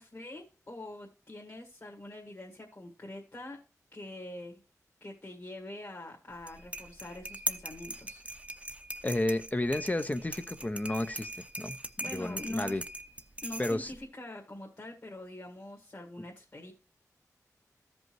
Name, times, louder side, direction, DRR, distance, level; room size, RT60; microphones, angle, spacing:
voice 1, 0.0-3.6 3.9-4.6 5.0-8.2 12.0-12.8 13.4-16.7, left 1 dB, 45° left, 1.8 m, -44 dB
sound 1, 6.3-14.0, right 1 dB, 20° right, 0.6 m, -41 dB
voice 2, 9.0-11.8 12.1-12.8 13.6-13.9, left 1 dB, 25° left, 0.5 m, -32 dB
13.5 x 5.3 x 3.1 m
cardioid pair, 45°, 6 cm